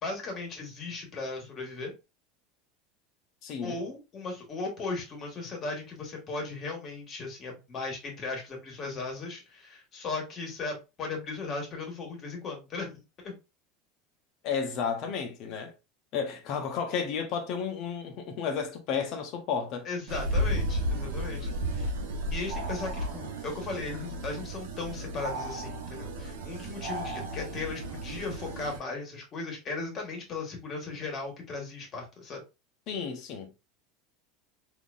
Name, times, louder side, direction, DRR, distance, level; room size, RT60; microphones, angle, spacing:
voice 1, 0.0-1.9 3.6-13.3 19.8-21.9 22.3-32.4, left 3 dB, 40° left, 1.7 m, -37 dB
voice 2, 3.4-3.8 14.4-15.7 16.1-19.9 32.9-33.6, left 6 dB, 60° left, 1.0 m, -32 dB
sound 1, 20.1-28.8, equal, 90° right, 0.8 m, -33 dB
3.8 x 2.9 x 2.5 m
supercardioid pair, 110°, 0 cm